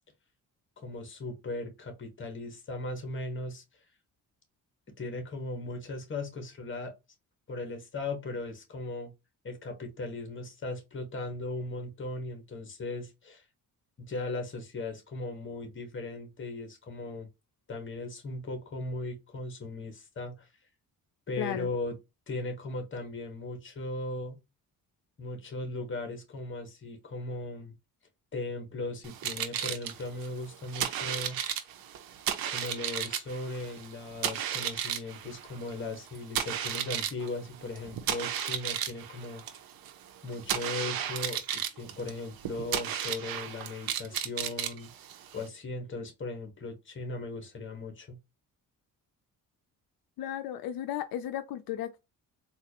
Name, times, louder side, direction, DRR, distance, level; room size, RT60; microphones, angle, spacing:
voice 1, 0.8-3.6 5.0-6.9 7.5-9.1 9.4-13.4 14.0-17.3 17.7-20.5 21.3-21.9 22.3-24.4 25.2-27.7 28.3-31.4 32.5-39.4 40.2-44.9 45.3-48.2, left 2 dB, 35° left, 1.4 m, -38 dB
voice 2, 21.4-21.7 50.2-52.0, left 11 dB, 80° left, 0.5 m, -35 dB
sound 1, 29.0-45.5, right 9 dB, 75° right, 0.7 m, -34 dB
4.0 x 2.5 x 2.8 m
cardioid pair, 105°, 35 cm